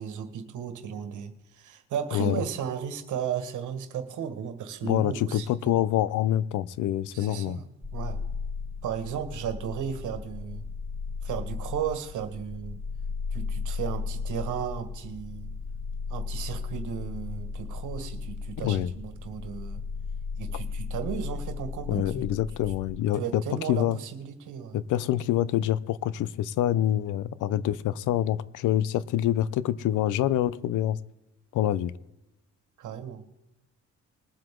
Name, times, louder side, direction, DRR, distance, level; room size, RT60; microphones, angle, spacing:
voice 1, 0.0-5.5 7.1-8.2 8.8-10.7 11.2-12.8 13.3-15.5 16.1-19.8 20.4-22.1 23.1-24.8 32.8-33.2, right 8 dB, 80° right, 1.7 m, -35 dB
voice 2, 4.8-7.6 18.6-18.9 21.9-23.4 23.7-24.0 24.7-31.0 31.5-31.9, left 12 dB, 85° left, 0.7 m, -26 dB
sound 1, 7.8-23.0, left 5 dB, 10° left, 1.2 m, -35 dB
21.0 x 7.8 x 3.8 m
cardioid pair, 90°, 30 cm